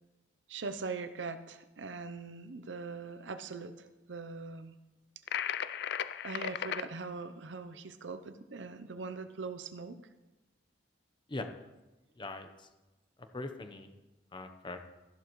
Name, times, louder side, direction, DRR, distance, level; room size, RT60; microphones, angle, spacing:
voice 1, 0.5-4.8 6.2-10.0, right 4 dB, 85° right, 11 dB, 0.7 m, -41 dB
sound 1, 5.3-6.9, left 9 dB, 65° left, 0.4 m, -35 dB
voice 2, 12.2-12.7 13.3-13.9 14.3-14.9, left 2 dB, 25° left, 7 dB, 0.9 m, -41 dB
13.5 x 11.5 x 3.2 m, 1.1 s
head